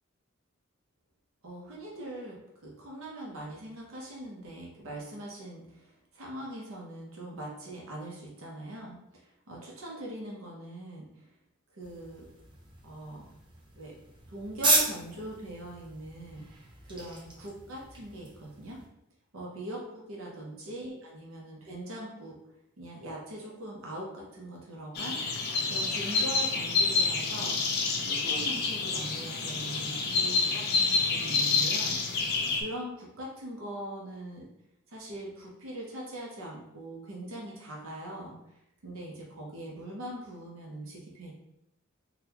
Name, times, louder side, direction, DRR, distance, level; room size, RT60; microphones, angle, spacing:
voice 1, 1.4-11.3 11.7-12.2 12.8-13.2 13.8-13.9 14.3-18.8 19.3-22.3 22.8-27.6 28.0-34.4 34.9-38.4 38.8-41.3, right 1 dB, 65° right, -3 dB, 0.8 m, -41 dB
sound 1, 11.8-18.9, right 2 dB, 20° right, 0.6 m, -34 dB
sound 2, 24.9-32.6, left 4 dB, 50° left, 0.5 m, -28 dB
3.9 x 2.2 x 2.9 m, 0.81 s
head